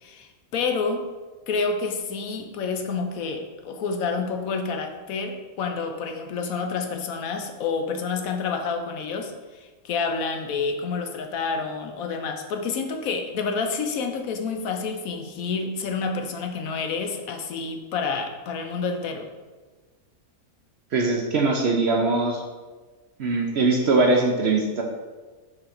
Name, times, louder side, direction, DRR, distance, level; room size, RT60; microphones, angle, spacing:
voice 1, 0.0-1.0 1.5-19.3, left 4 dB, 70° left, 4 dB, 1.1 m, -29 dB
voice 2, 20.9-22.4 23.2-24.8, right 3 dB, 60° right, 1 dB, 0.7 m, -21 dB
4.8 x 3.8 x 5.7 m, 1.3 s
omnidirectional pair, 1.6 m